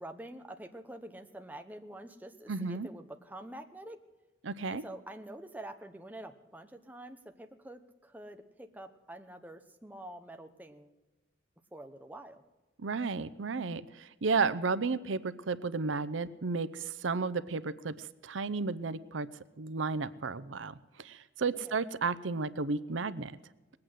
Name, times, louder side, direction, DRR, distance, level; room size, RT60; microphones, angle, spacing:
voice 1, 0.0-4.0 4.7-10.9 11.7-12.4 21.5-21.8, right 1 dB, 10° right, 5 dB, 0.9 m, -47 dB
voice 2, 2.5-2.9 4.4-4.8 12.8-19.3 19.6-23.3, right 4 dB, 85° right, 16 dB, 0.7 m, -33 dB
20.0 x 8.7 x 7.8 m, 1.1 s
head